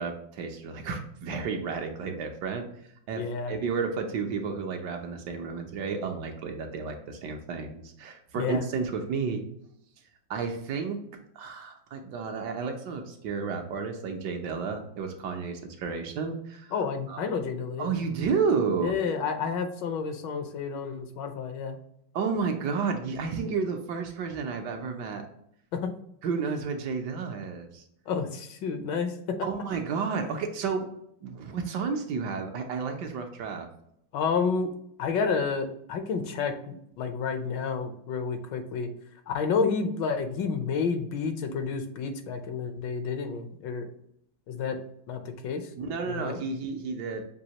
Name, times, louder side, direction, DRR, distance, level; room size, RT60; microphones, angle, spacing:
voice 1, 0.0-2.7 3.1-9.4 10.3-11.0 11.3-17.2 17.8-19.0 22.1-25.3 26.2-27.8 29.4-30.9 31.2-33.7 45.8-47.2, right 5 dB, 70° right, 4 dB, 1.2 m, -31 dB
voice 2, 3.1-3.5 8.3-8.6 16.7-17.9 18.8-21.8 25.7-25.9 28.1-29.4 34.1-34.7 35.0-38.9 39.3-43.9 44.5-44.8 45.1-45.7 46.0-46.4, left 5 dB, 75° left, 7 dB, 1.3 m, -30 dB
6.2 x 2.7 x 2.8 m, 0.72 s
omnidirectional pair, 2.0 m